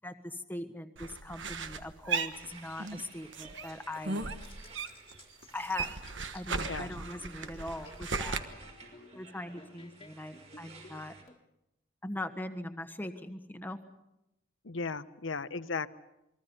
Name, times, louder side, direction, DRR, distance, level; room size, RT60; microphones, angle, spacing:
voice 1, 0.0-4.4 5.5-5.9 6.3-8.3 9.1-11.1 12.0-13.8, left 1 dB, 10° left, 7 dB, 1.4 m, -41 dB
sound 1, 1.0-3.0 3.3-5.2 5.4-8.4, right 4 dB, 65° right, 1.4 m, -36 dB
sound 2, 2.3-11.2, right 3 dB, 35° right, 4.9 m, -54 dB
sound 3, 4.4-11.4, left 3 dB, 25° left, 1.8 m, -56 dB
voice 2, 14.6-15.9, left 4 dB, 75° left, 13 dB, 0.9 m, -35 dB
28.5 x 22.0 x 5.5 m, 0.87 s
head